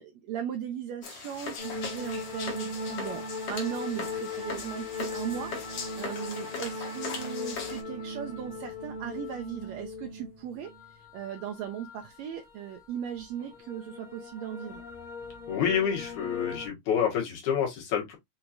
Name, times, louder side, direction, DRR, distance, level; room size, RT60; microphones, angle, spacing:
voice 1, 0.0-14.8, right 9 dB, 75° right, 1.7 m, -37 dB
sound 1, 1.0-7.8, left 4 dB, 60° left, 2.2 m, -39 dB
sound 2, 1.6-16.7, left 3 dB, 25° left, 0.8 m, -39 dB
voice 2, 15.5-18.2, left 8 dB, 80° left, 3.0 m, -28 dB
6.1 x 2.9 x 2.5 m
omnidirectional pair, 3.4 m